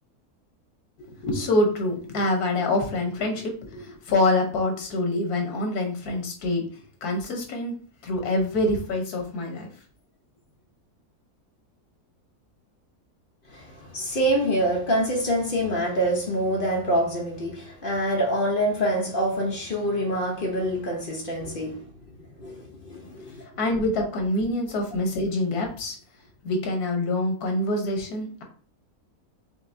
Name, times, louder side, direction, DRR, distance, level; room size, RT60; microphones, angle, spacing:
voice 1, 1.1-9.7 23.0-23.2 23.6-26.0 26.4-28.4, left 2 dB, 85° left, 1.5 m, -26 dB
voice 2, 13.5-21.9 22.2-23.4, right 1 dB, 45° left, 0.9 m, -26 dB
4.7 x 3.3 x 2.6 m
omnidirectional pair, 1.6 m